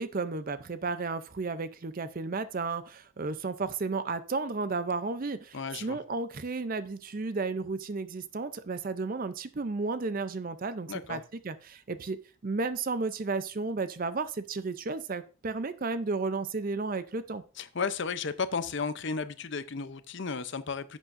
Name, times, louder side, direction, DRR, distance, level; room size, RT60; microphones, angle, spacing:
voice 1, 0.0-17.4, right 3 dB, 40° right, 12 dB, 0.5 m, -33 dB
voice 2, 5.5-6.0 10.9-11.2 17.6-21.0, left 5 dB, 55° left, 13 dB, 0.6 m, -34 dB
11.0 x 8.2 x 2.6 m, 0.35 s
head